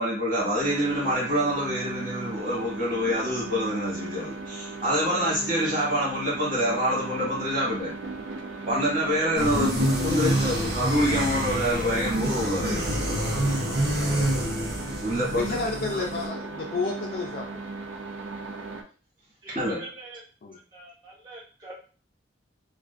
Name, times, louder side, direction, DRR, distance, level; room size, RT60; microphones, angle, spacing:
voice 1, 0.0-7.9 8.7-12.8 15.0-15.6 15.9-16.0 19.5-19.8, equal, 40° right, -6 dB, 1.2 m, -26 dB
sound 1, 0.6-18.8, right 3 dB, 90° right, 0.4 m, -37 dB
sound 2, 9.3-16.2, right 1 dB, 60° right, 0.7 m, -27 dB
voice 2, 15.3-17.6 20.4-20.6, left 4 dB, 50° left, -1 dB, 0.4 m, -31 dB
voice 3, 19.4-20.2 20.5-21.7, right 2 dB, 20° right, -6 dB, 0.4 m, -42 dB
2.4 x 2.4 x 2.4 m, 0.38 s
head